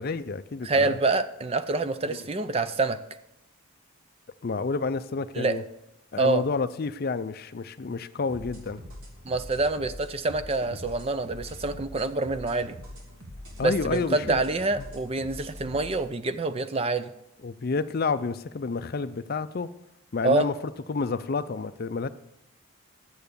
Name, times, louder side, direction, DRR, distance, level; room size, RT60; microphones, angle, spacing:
voice 1, 0.0-1.0 2.1-2.3 4.4-5.6 6.1-8.8 13.6-14.4 17.4-19.7 20.1-20.5 20.9-22.1, left 4 dB, 45° left, 13 dB, 0.4 m, -29 dB
voice 2, 0.6-3.0 5.3-5.6 6.2-6.4 9.2-12.8 13.6-17.1 20.2-20.5, right 3 dB, 25° right, 11 dB, 0.4 m, -26 dB
sound 1, 8.3-16.0, left 1 dB, 70° right, 2.8 m, -43 dB
10.5 x 7.8 x 6.9 m, 0.86 s
head